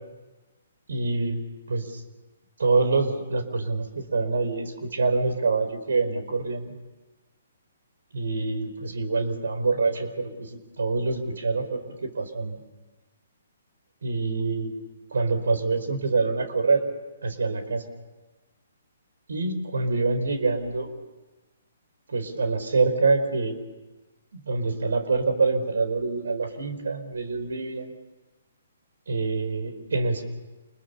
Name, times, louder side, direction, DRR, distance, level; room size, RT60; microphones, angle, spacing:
voice 1, 0.9-1.4 1.7-2.0 2.6-6.8 8.1-10.5 10.8-12.6 14.0-14.7 15.1-16.8 17.2-17.8 19.3-20.9 22.1-23.6 24.3-27.9 29.1-30.2, right 3 dB, 80° right, 8 dB, 4.7 m, -26 dB
28.5 x 21.5 x 7.0 m, 1.2 s
hypercardioid pair, 145°, 0 cm